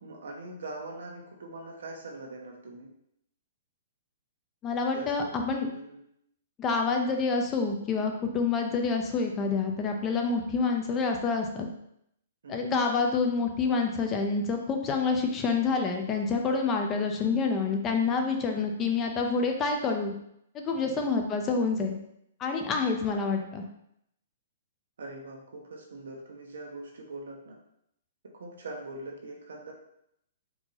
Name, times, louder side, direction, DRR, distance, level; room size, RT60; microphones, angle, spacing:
voice 1, 0.0-2.9 4.9-5.3 5.7-6.0 10.3-10.4 12.4-12.7 20.8-21.1 25.0-27.6 28.3-29.7, right 2 dB, 90° right, 0 dB, 1.2 m, -42 dB
voice 2, 4.6-5.7 6.6-11.7 12.5-20.1 20.5-22.0 22.4-23.6, left 4 dB, 20° left, 3 dB, 0.5 m, -27 dB
4.7 x 2.8 x 4.0 m, 0.73 s
hypercardioid pair, 160°, 0 cm